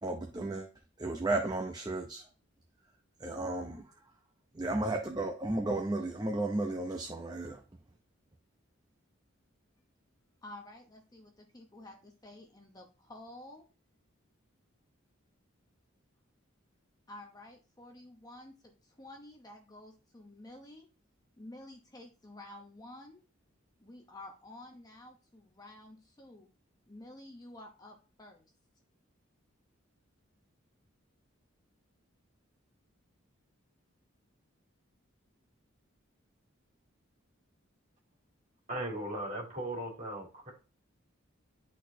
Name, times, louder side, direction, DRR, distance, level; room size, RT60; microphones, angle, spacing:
voice 1, 0.0-0.7 1.0-2.2 3.2-3.8 4.5-7.6, right 2 dB, 20° right, 0.6 m, -33 dB
voice 2, 10.4-13.7 17.1-20.9 21.4-23.2 23.8-26.5 26.9-28.5, left 1 dB, 20° left, 0.8 m, -51 dB
voice 3, 38.7-40.5, right 1 dB, 40° right, 3.2 m, -37 dB
10.5 x 4.2 x 2.7 m
head